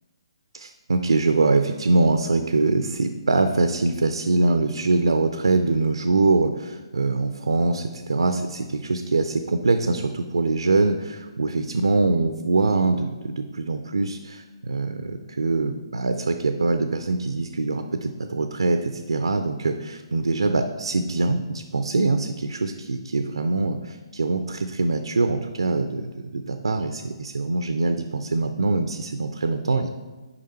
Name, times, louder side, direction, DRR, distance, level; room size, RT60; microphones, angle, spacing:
voice 1, 0.5-29.9, right 3 dB, 70° right, 7 dB, 0.4 m, -23 dB
6.7 x 5.0 x 4.2 m, 1.2 s
figure-of-eight pair, 130°, 3 cm